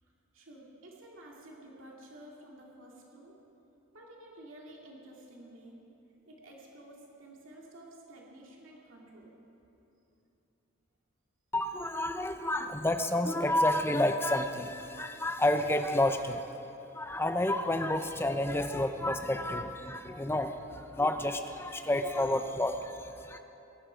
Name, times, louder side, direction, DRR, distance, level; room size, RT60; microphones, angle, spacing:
voice 1, 0.0-3.4 3.9-5.8 6.3-9.3, right 1 dB, 65° right, -2 dB, 2.4 m, -52 dB
voice 2, 11.5-16.5 16.9-23.4, left 1 dB, 10° left, 8 dB, 0.6 m, -30 dB
20.0 x 12.0 x 5.1 m, 2.9 s
head